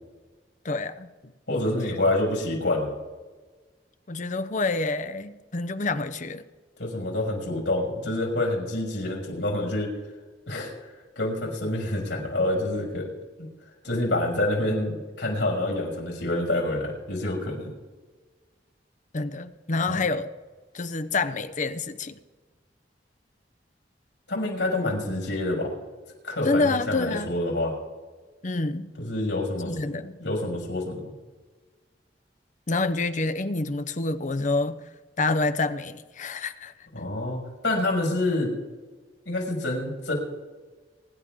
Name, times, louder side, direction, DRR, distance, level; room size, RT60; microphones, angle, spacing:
voice 1, 0.6-1.3 4.1-6.4 19.1-20.3 20.7-22.2 26.4-27.4 28.4-28.9 29.6-30.2 32.7-34.8 35.2-36.7, left 3 dB, 45° left, 10 dB, 0.8 m, -27 dB
voice 2, 1.5-2.9 6.8-9.9 10.5-13.1 13.8-17.7 19.9-20.0 24.3-25.7 26.2-27.7 29.0-29.9 30.2-31.0 36.9-38.5 39.3-40.1, left 1 dB, 85° left, -1 dB, 5.7 m, -27 dB
25.0 x 11.0 x 3.7 m, 1.3 s
head